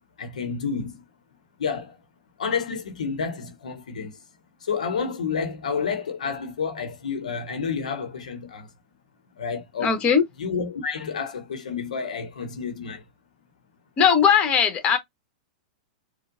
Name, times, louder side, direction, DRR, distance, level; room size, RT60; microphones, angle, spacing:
voice 1, 0.2-1.0 1.6-2.0 2.4-4.1 4.6-8.7 9.4-10.0 10.4-13.1, left 5 dB, 75° left, 0.8 m, -30 dB
voice 2, 9.8-10.2 14.0-15.0, left 7 dB, 30° left, 1.2 m, -19 dB
4.4 x 2.1 x 2.5 m
hypercardioid pair, 100°, 4 cm